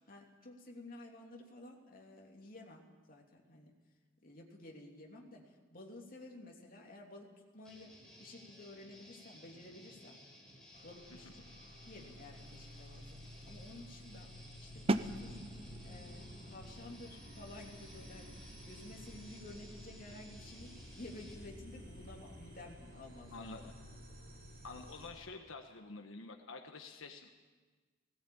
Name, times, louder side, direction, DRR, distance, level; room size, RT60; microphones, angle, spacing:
voice 1, 0.1-3.7 4.2-10.2 10.7-11.5 11.8-13.1 13.4-14.3 14.6-15.4 15.8-18.4 18.6-23.6, left 2 dB, 45° left, 0 dB, 3.0 m, -53 dB
Guitar, 7.6-21.3, left 1 dB, 5° left, 4.3 m, -58 dB
sound 1, 10.7-25.1, equal, 45° right, 6.2 m, -53 dB
sound 2, 14.9-20.6, right 2 dB, 30° right, 0.7 m, -41 dB
voice 2, 23.3-23.7 24.6-27.3, left 3 dB, 85° left, 4 dB, 1.3 m, -48 dB
18.0 x 17.5 x 8.8 m, 1.4 s
head